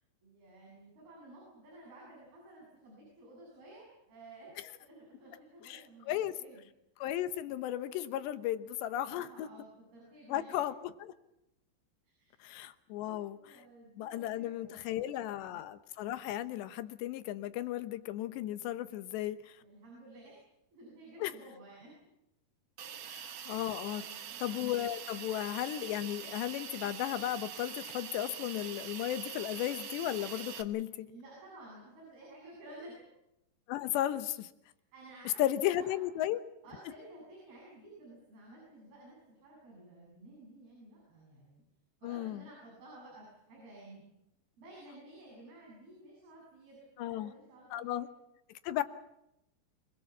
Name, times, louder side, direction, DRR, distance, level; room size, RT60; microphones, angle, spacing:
voice 1, 0.2-4.5 4.8-6.6 9.1-10.6 12.0-12.4 13.0-15.4 19.6-20.4 20.7-22.0 22.8-23.1 23.8-24.4 31.1-33.0 34.9-36.0 36.6-41.6 42.0-44.1 44.6-48.0, right 1 dB, 60° right, -4 dB, 9.3 m, -53 dB
voice 2, 5.7-6.4 7.0-9.5 10.3-11.1 12.4-13.4 14.0-19.6 21.2-21.3 23.5-24.0 24.4-31.1 33.7-34.5 35.4-36.4 42.0-42.5 47.0-47.3 47.7-48.1 48.6-48.8, left 13 dB, 85° left, 11 dB, 3.3 m, -35 dB
Hiss, 22.8-30.6, right 9 dB, 90° right, 1.4 m, -44 dB
26.5 x 21.0 x 7.2 m, 0.83 s
omnidirectional pair, 4.9 m